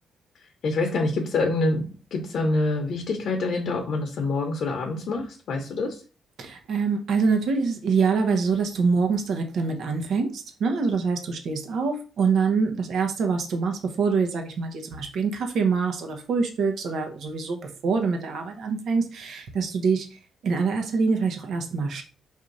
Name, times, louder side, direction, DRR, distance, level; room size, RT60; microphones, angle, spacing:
voice 1, 0.6-6.0, left 2 dB, 65° left, 3 dB, 0.8 m, -26 dB
voice 2, 6.4-20.1 20.4-22.1, right 5 dB, 70° right, 4 dB, 0.9 m, -25 dB
4.9 x 2.7 x 3.9 m, 0.37 s
cardioid pair, 90°, 0 cm